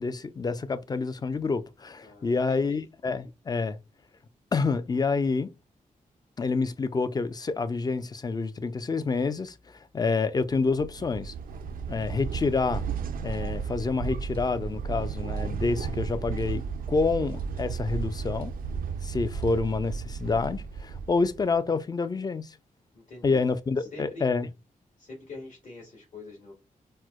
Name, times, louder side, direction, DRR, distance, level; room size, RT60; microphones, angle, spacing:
voice 1, 0.0-3.8 4.5-5.5 6.4-11.3 11.9-12.8 13.2-16.6 16.9-18.5 19.0-22.6 23.2-24.5, left 4 dB, 30° left, 0.4 m, -28 dB
voice 2, 2.0-2.8 22.9-23.4 23.9-24.2 25.0-26.5, left 2 dB, 60° left, 1.6 m, -44 dB
sound 1, 10.5-21.5, right 6 dB, 85° right, 0.4 m, -34 dB
4.3 x 2.0 x 2.3 m
cardioid pair, 85°, 14 cm